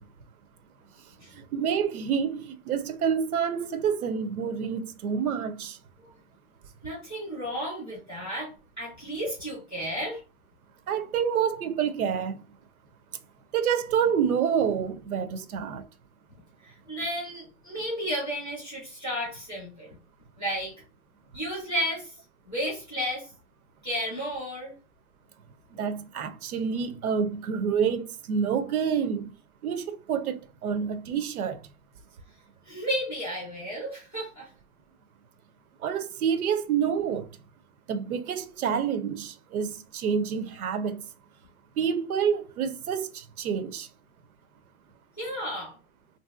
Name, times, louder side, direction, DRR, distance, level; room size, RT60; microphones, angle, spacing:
voice 1, 1.3-5.8 10.9-12.4 13.5-15.8 25.7-29.3 29.6-31.6 35.8-37.3 37.9-41.0 41.8-43.9, right 7 dB, 75° right, 0.6 m, -28 dB
voice 2, 6.8-8.5 8.8-10.2 16.6-19.9 20.4-20.7 21.3-22.2 22.5-23.3 23.8-24.7 32.6-34.5 45.2-45.7, equal, ahead, 0.5 m, -33 dB
3.2 x 2.7 x 2.3 m
hypercardioid pair, 170°, 44 cm